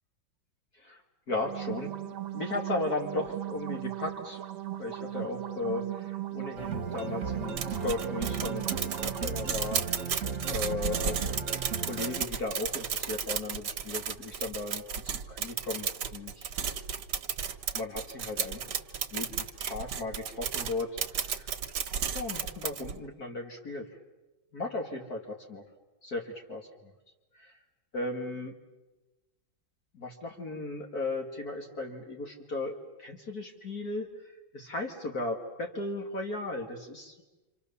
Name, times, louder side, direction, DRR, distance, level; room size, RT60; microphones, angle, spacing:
voice 1, 1.3-1.9 2.3-4.4 4.8-8.7 9.0-9.9 10.4-11.4 11.8-16.5 17.7-18.6 19.1-21.5 22.1-24.0 24.5-25.6 26.0-26.9 27.3-27.6 27.9-28.5 29.9-34.1 34.5-37.1, left 2 dB, 50° left, 2 dB, 2.6 m, -36 dB
sound 1, 1.3-9.3, right 13 dB, 90° right, 1.9 m, -38 dB
sound 2, 6.6-12.3, right 5 dB, 40° right, 1.9 m, -36 dB
sound 3, 7.6-23.0, right 7 dB, 60° right, 1.8 m, -34 dB
28.5 x 27.0 x 7.0 m, 1.1 s
omnidirectional pair, 2.1 m